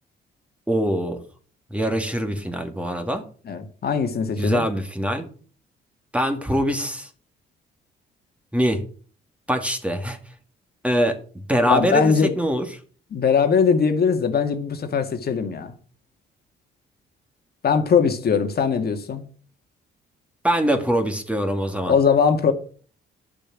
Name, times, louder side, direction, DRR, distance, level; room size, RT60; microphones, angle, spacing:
voice 1, 0.7-1.2 1.7-3.2 4.4-5.3 6.1-7.1 8.5-8.8 9.5-10.2 10.8-11.2 11.5-12.6 20.4-21.9, equal, 5° right, 2.1 m, -23 dB
voice 2, 3.5-4.6 11.7-12.3 13.1-15.7 17.6-19.2 21.9-22.5, left 6 dB, 50° left, 1.8 m, -20 dB
11.0 x 6.9 x 6.3 m
cardioid pair, 90°, 20 cm